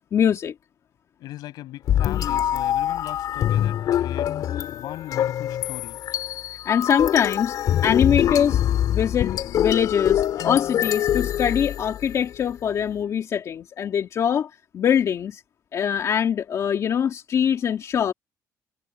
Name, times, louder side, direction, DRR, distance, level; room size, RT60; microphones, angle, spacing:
voice 1, 0.1-0.5 6.7-7.6 7.8-8.6 8.9-15.4 15.7-18.1, left 8 dB, 50° left, 2.4 m, -23 dB
voice 2, 1.2-4.3 4.7-6.0, left 15 dB, 85° left, 7.5 m, -38 dB
sound 1, 1.9-12.2, left 11 dB, 65° left, 2.6 m, -24 dB
cardioid pair, 120°, 7 cm